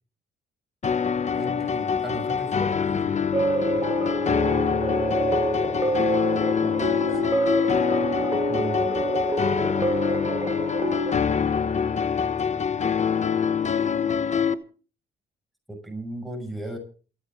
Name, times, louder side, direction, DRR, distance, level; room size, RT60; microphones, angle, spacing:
sound 1, 0.8-14.5, left 7 dB, 35° left, 1.2 m, -25 dB
voice 1, 1.3-3.3 6.6-7.4 8.5-9.1 15.7-16.8, right 1 dB, ahead, 1 dB, 6.4 m, -36 dB
sound 2, 3.3-11.2, right 2 dB, 20° right, 2.2 m, -27 dB
voice 2, 3.7-5.8, right 4 dB, 35° right, 4 dB, 6.6 m, -46 dB
27.5 x 10.0 x 3.8 m, 0.38 s
cardioid pair, 90°, 20 cm